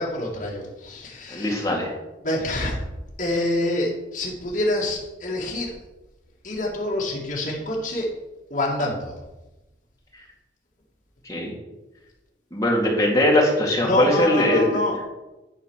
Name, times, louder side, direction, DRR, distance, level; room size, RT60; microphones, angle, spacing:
voice 1, 0.0-1.7 2.2-2.8 3.2-5.7 6.4-8.1 8.5-9.2 13.8-15.0, left 1 dB, 45° left, -4 dB, 2.1 m, -26 dB
voice 2, 1.3-1.9 11.3-11.5 12.5-14.8, left 1 dB, 15° left, -3 dB, 2.1 m, -20 dB
11.0 x 4.2 x 6.4 m, 1.0 s
head